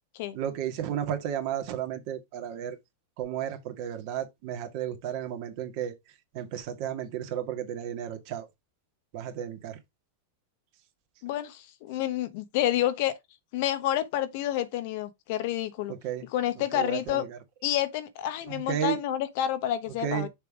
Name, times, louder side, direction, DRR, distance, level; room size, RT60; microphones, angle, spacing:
voice 1, 0.3-2.8 3.2-8.5 9.1-9.8 15.9-16.3 16.6-17.4 18.5-19.0 20.0-20.3, right 10 dB, 55° right, 1.8 m, -33 dB
voice 2, 11.2-13.2 13.5-15.9 16.3-17.2 17.6-20.3, left 12 dB, 60° left, 1.1 m, -29 dB
6.5 x 3.5 x 4.9 m
hypercardioid pair, 100°, 0 cm